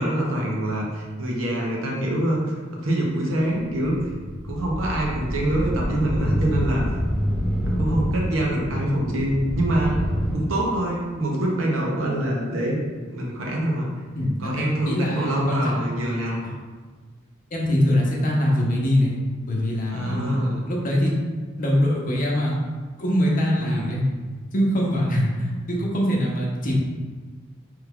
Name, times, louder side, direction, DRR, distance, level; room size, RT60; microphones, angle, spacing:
voice 1, 0.0-2.4 2.8-4.0 4.5-6.8 7.6-10.0 10.3-12.8 13.1-13.9 14.4-16.4 19.9-20.6 23.6-24.0, right 1 dB, 90° right, -2 dB, 0.7 m, -25 dB
sound 1, 3.6-10.3, equal, 5° right, 0.6 m, -27 dB
voice 2, 14.2-15.7 16.4-16.5 17.5-19.2 19.5-20.4 20.7-21.1 21.6-22.6 23.0-24.0 24.5-26.7, equal, 45° left, -3 dB, 0.7 m, -23 dB
3.3 x 2.3 x 3.4 m, 1.4 s
head